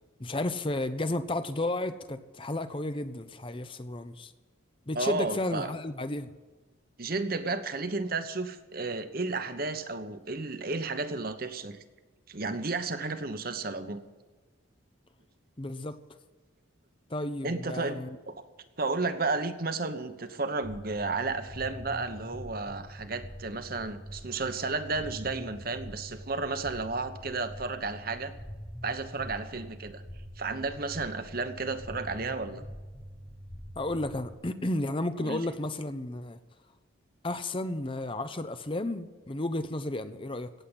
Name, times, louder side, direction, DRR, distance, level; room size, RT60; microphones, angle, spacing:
voice 1, 0.2-4.3 4.9-6.3 15.6-16.0 17.1-18.1 33.8-36.4 37.2-40.5, left 1 dB, 25° left, 11 dB, 0.7 m, -32 dB
voice 2, 4.9-5.7 7.0-11.8 12.3-14.0 17.4-18.0 18.3-18.4 18.8-28.3 28.8-30.0 30.4-32.6 35.2-35.4, right 3 dB, 45° right, 9 dB, 1.1 m, -32 dB
sound 1, 20.6-34.3, equal, 5° left, 1.0 m, -44 dB
17.0 x 7.6 x 9.8 m, 1.3 s
head